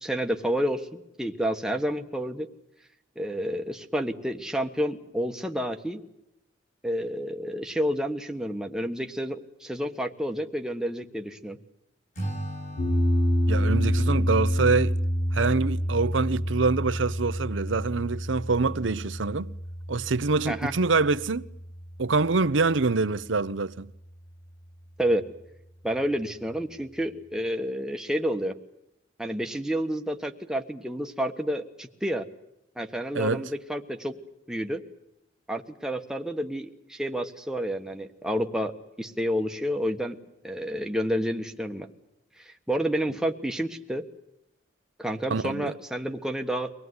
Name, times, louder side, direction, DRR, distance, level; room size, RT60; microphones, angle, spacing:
voice 1, 0.0-2.5 3.1-6.0 6.8-11.6 20.5-20.7 25.0-25.3 25.8-28.6 29.2-32.2 32.8-34.2 34.5-34.8 35.5-40.2 40.4-41.9 42.4-44.1 45.0-46.7, equal, 5° right, 1.3 m, -29 dB
Acoustic guitar / Strum, 12.1-15.4, right 1 dB, 40° left, 6.3 m, -39 dB
sound 1, 12.8-23.0, equal, 70° left, 3.7 m, -28 dB
voice 2, 13.5-15.0 15.3-19.5 19.9-21.4 22.0-23.9 33.1-33.4 45.3-45.7, right 3 dB, 80° right, 0.8 m, -25 dB
24.5 x 18.5 x 9.6 m
head